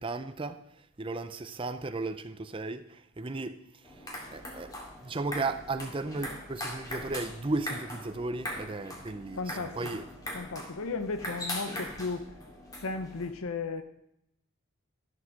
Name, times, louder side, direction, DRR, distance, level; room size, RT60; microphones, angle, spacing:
voice 1, 0.0-4.8 5.0-10.1, right 3 dB, 25° right, 0.5 m, -35 dB
sound 1, 3.8-13.3, left 1 dB, 15° left, 2.4 m, -41 dB
voice 2, 9.3-10.0 10.3-12.3 12.8-13.8, left 4 dB, 80° left, 0.7 m, -35 dB
14.0 x 7.4 x 6.4 m
head